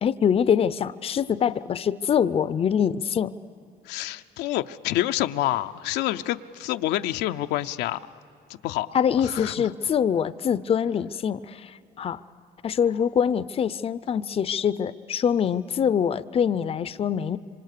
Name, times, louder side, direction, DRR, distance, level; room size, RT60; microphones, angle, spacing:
voice 1, 0.0-3.4 8.9-12.2 12.6-17.4, left 8 dB, 35° left, 15 dB, 0.6 m, -24 dB
voice 2, 3.8-8.0 8.5-8.9 9.2-9.7, left 14 dB, 85° left, 8 dB, 0.6 m, -28 dB
26.5 x 25.0 x 6.7 m, 2.8 s
cardioid pair, 110°, 17 cm